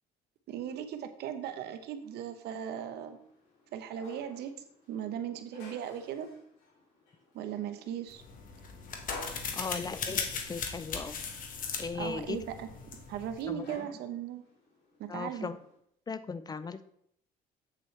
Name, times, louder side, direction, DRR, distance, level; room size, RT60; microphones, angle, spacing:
voice 1, 0.5-3.2 3.7-4.5 4.9-6.3 7.3-8.2 11.9-12.7 13.1-14.4 15.0-15.5, right 9 dB, 75° right, 8 dB, 0.9 m, -37 dB
sound 1, 2.0-15.8, left 2 dB, 80° left, 3.0 m, -53 dB
sound 2, 8.1-13.5, left 5 dB, 55° left, 1.4 m, -38 dB
voice 2, 9.5-11.2 11.8-12.4 13.5-13.7 15.1-15.6 16.1-16.8, left 4 dB, 25° left, 13 dB, 0.4 m, -37 dB
7.9 x 7.5 x 3.3 m, 0.71 s
cardioid pair, 110°, 17 cm